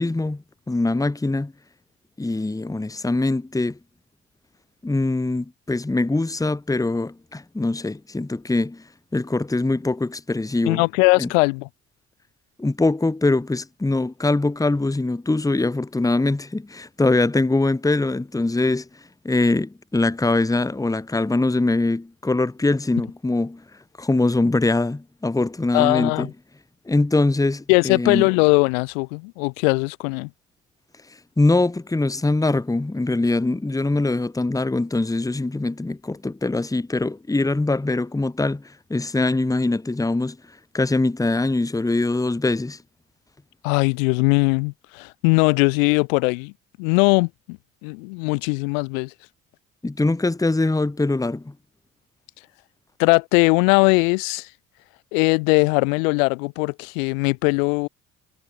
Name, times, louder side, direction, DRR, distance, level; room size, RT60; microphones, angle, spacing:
voice 1, 0.0-1.5 2.2-3.8 4.8-8.8 9.1-10.8 11.2-11.3 12.6-18.9 19.2-23.6 24.0-26.3 26.9-28.3 31.4-40.4 40.7-42.8 49.8-51.5, left 2 dB, 10° left, 1.1 m, -22 dB
voice 2, 10.7-11.7 25.7-26.3 27.7-30.3 43.6-46.5 46.8-49.1 53.0-54.5 55.1-57.9, left 32 dB, 80° left, 1.4 m, -20 dB
hypercardioid pair, 55°, 40 cm